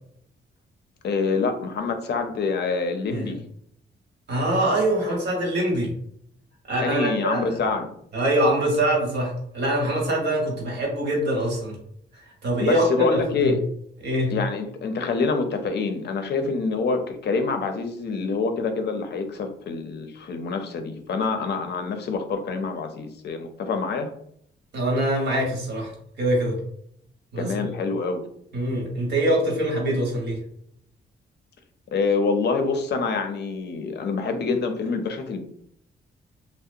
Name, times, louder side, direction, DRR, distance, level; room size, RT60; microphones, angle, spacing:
voice 1, 1.0-3.4 6.8-7.9 12.6-13.6 14.3-24.1 27.4-28.2 31.9-35.4, left 4 dB, 60° left, 6 dB, 0.5 m, -26 dB
voice 2, 4.3-5.9 6.7-7.5 8.1-11.8 12.1-13.5 14.0-14.4 24.7-26.6 27.3-27.7 28.5-30.4, right 1 dB, 60° right, 0 dB, 1.1 m, -24 dB
2.7 x 2.1 x 2.4 m, 0.68 s
cardioid pair, 90°, 20 cm